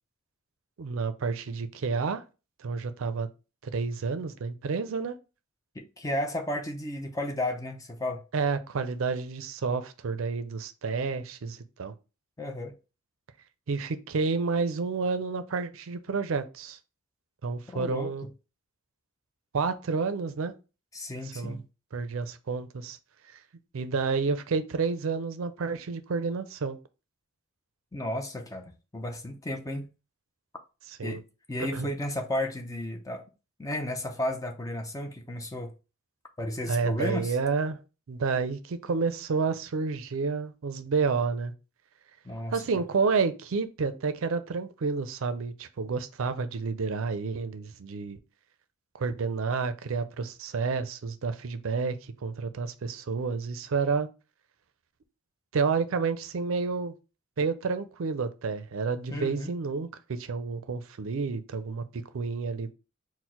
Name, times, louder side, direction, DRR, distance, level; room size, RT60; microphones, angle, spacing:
voice 1, 0.8-2.2 2.6-3.3 3.6-5.1 8.3-11.9 13.7-16.8 17.4-18.3 19.5-20.5 21.4-21.6 21.9-23.0 23.7-26.8 31.0-31.2 31.6-31.9 36.7-37.8 38.1-41.5 42.5-48.2 49.0-54.1 55.5-56.9 57.4-62.7, right 4 dB, 65° right, 0.4 m, -30 dB
voice 2, 5.8-8.2 12.4-12.8 17.7-18.1 20.9-21.6 27.9-29.9 31.0-31.2 31.5-33.2 33.6-35.7 36.4-37.4 42.2-42.8 59.1-59.5, left 1 dB, 15° left, 0.4 m, -33 dB
4.3 x 2.1 x 4.3 m
head